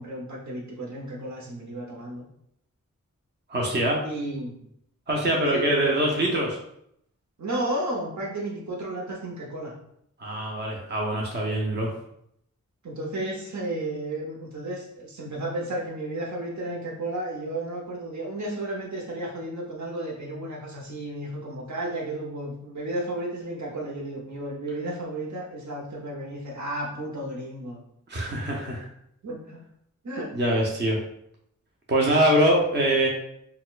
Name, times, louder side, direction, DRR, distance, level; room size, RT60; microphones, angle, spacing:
voice 1, 0.0-2.2 4.0-4.6 5.5-6.0 7.4-9.7 12.8-27.8 29.2-29.6 30.0-30.3, right 1 dB, 65° right, -2 dB, 0.9 m, -33 dB
voice 2, 3.5-4.0 5.1-6.6 10.2-11.9 28.1-28.9 30.3-31.0 31.9-33.1, right 1 dB, 35° right, -1 dB, 0.6 m, -23 dB
4.1 x 2.2 x 2.4 m, 0.73 s
wide cardioid pair, 75°, 31 cm